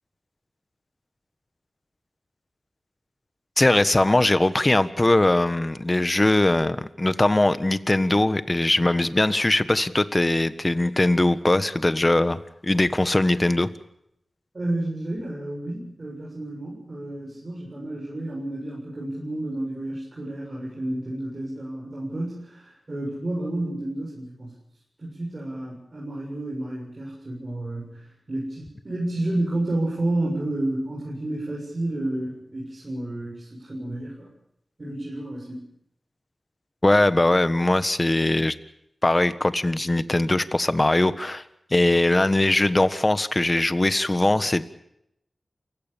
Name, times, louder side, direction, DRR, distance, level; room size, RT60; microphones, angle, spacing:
voice 1, 3.6-13.7 36.8-38.5 39.0-41.4 41.7-44.7, left 2 dB, 30° left, 13 dB, 1.4 m, -21 dB
voice 2, 14.5-24.5 25.0-34.3 34.8-35.6, right 1 dB, 45° right, -4 dB, 7.3 m, -31 dB
29.0 x 16.5 x 7.1 m, 0.77 s
wide cardioid pair, 60°, 0 cm